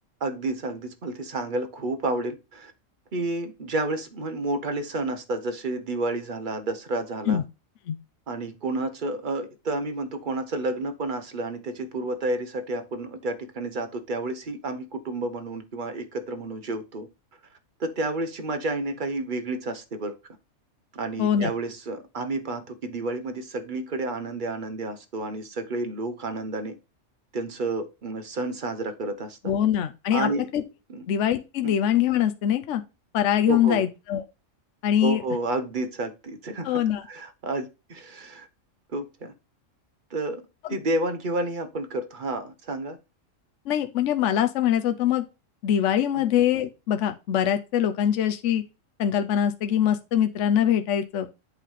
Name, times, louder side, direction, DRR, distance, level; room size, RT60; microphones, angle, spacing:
voice 1, 0.2-2.7 3.1-7.4 8.3-17.1 17.8-20.1 20.9-26.7 27.3-29.5 30.1-30.5 30.9-31.0 31.6-31.7 33.5-33.8 35.0-38.5 38.9-39.3 40.1-40.4 40.7-43.0 46.1-46.2, right 2 dB, 40° right, 1.1 m, -30 dB
voice 2, 21.2-21.5 29.4-30.6 31.1-32.8 33.1-34.2 34.8-35.2 36.6-37.0 43.7-45.2 45.6-48.6 49.0-51.3, left 10 dB, 70° left, 1.0 m, -23 dB
8.2 x 3.3 x 5.6 m
omnidirectional pair, 1.3 m